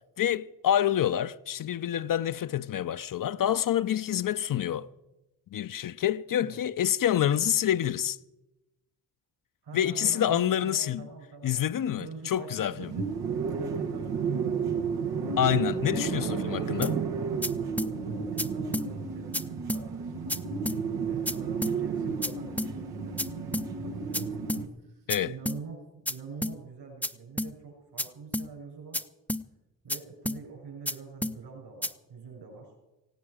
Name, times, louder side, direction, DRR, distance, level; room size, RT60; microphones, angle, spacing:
voice 1, 0.2-4.9 5.5-8.2 9.7-11.1 11.4-12.9 15.4-16.9 25.1-25.3, left 10 dB, 50° left, 0.6 m, -27 dB
voice 2, 9.6-13.1 13.5-15.2 15.9-16.8 17.5-20.4 21.0-24.3 24.8-25.8 26.1-29.0 29.8-32.7, right 5 dB, 65° right, 7.6 m, -45 dB
sound 1, 12.8-24.7, right 5 dB, 85° right, 1.5 m, -32 dB
sound 2, 16.8-17.0 17.4-17.5 17.8-17.9 18.4-18.5 18.7-18.9 19.3-19.4 19.7-19.8 20.3-20.4 20.7-20.8 21.3-21.4 21.6-21.8 22.2-22.3 22.6-22.7 23.2-23.3 23.5-23.7 24.1-24.2 24.5-24.6 25.1-25.2 25.5-25.6 26.1-26.2 26.4-26.6 27.0-27.1 27.4-27.5 28.0-28.1 28.3-28.5 28.9-29.0 29.3-29.4 29.9-30.0 30.3-30.4 30.9-31.0 31.2-31.4 31.8-31.9, left 1 dB, 5° left, 0.6 m, -30 dB
17.5 x 16.5 x 5.0 m
hypercardioid pair, 40°, 43 cm